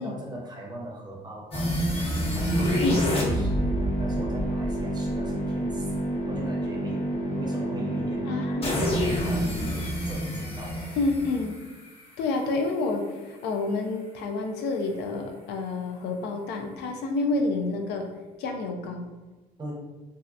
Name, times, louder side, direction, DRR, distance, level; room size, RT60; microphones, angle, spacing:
voice 1, 0.0-1.9 2.3-5.9 6.3-10.9 19.6-19.7, right 1 dB, 25° right, -2 dB, 0.6 m, -38 dB
sound 1, 1.5-12.5, equal, 35° left, 0.7 m, -28 dB
voice 2, 8.3-8.8 11.0-11.6 12.2-18.1 18.4-19.1, left 3 dB, 80° left, 4 dB, 0.4 m, -29 dB
2.7 x 2.1 x 2.3 m, 1.2 s
cardioid pair, 110°, 17 cm